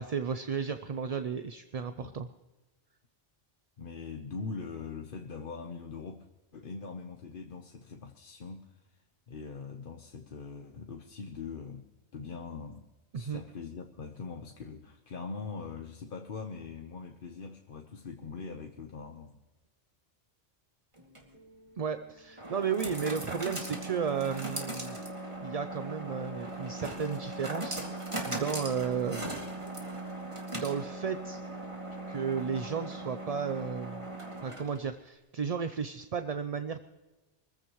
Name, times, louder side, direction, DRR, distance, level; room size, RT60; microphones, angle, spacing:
voice 1, 0.0-2.3 13.1-13.4 21.8-25.0 25.4-29.4 30.5-31.4 32.1-34.1 34.4-36.9, right 6 dB, 45° right, 9 dB, 0.6 m, -34 dB
voice 2, 3.8-6.3 6.5-11.9 12.1-12.9 13.1-19.4, left 5 dB, 55° left, 4 dB, 1.1 m, -42 dB
sound 1, 21.0-34.9, right 1 dB, 25° right, 2.3 m, -39 dB
23.5 x 15.0 x 3.1 m, 1.1 s
omnidirectional pair, 1.1 m